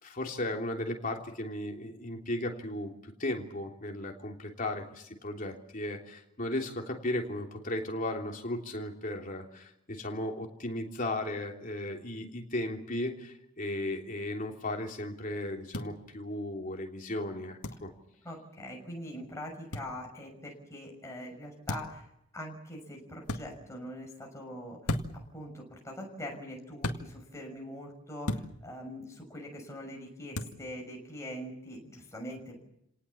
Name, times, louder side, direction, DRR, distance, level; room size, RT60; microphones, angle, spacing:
voice 1, 0.0-17.9, left 1 dB, 35° left, 1 dB, 3.2 m, -36 dB
sound 1, 15.7-15.9 17.6-17.8 19.7-19.9 21.7-22.0 23.2-23.4 24.8-25.3 26.8-27.0 28.2-28.5 30.3-30.6, left 1 dB, 85° left, 2.0 m, -33 dB
voice 2, 18.2-24.9 25.3-32.6, equal, 15° left, 0 dB, 6.2 m, -43 dB
29.0 x 18.5 x 7.2 m, 0.78 s
head